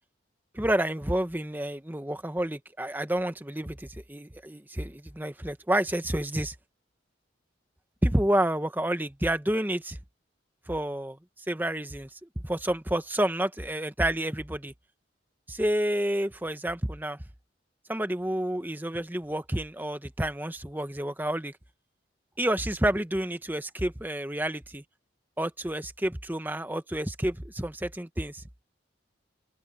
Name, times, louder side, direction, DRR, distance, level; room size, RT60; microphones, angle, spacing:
voice 1, 0.5-6.5 8.0-10.0 10.7-11.2 11.5-14.7 15.5-17.2 17.9-21.5 22.4-24.8 25.4-28.4, right 1 dB, 10° right, 1.0 m, -29 dB
head